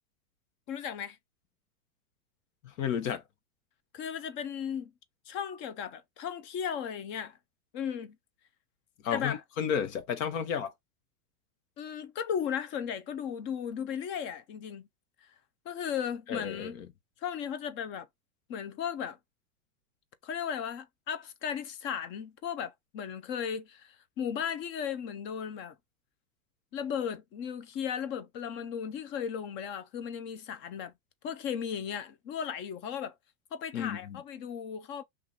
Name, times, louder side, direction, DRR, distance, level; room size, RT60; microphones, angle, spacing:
voice 1, 0.7-1.2 3.9-4.9 5.3-7.4 7.7-8.2 9.1-9.4 11.8-14.9 15.7-16.8 17.2-18.1 18.5-19.2 20.2-25.8 26.7-30.9 31.2-33.1 33.5-35.0, left 8 dB, 25° left, 0.4 m, -36 dB
voice 2, 2.6-3.2 9.0-10.7 16.3-16.9 33.7-34.2, left 8 dB, 60° left, 1.1 m, -32 dB
2.9 x 2.4 x 3.8 m
hypercardioid pair, 120°, 45 cm